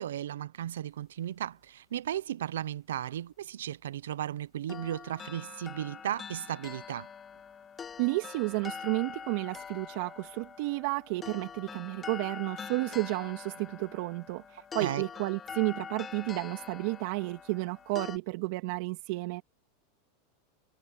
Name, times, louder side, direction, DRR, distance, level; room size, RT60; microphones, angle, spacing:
voice 1, 0.0-7.1 14.8-15.1, right 11 dB, 85° right, 0.6 m, -35 dB
sound 1, 4.7-18.2, left 7 dB, 25° left, 1.1 m, -44 dB
voice 2, 8.0-19.4, right 25 dB, 60° right, 2.2 m, -32 dB
hypercardioid pair, 120°, 0 cm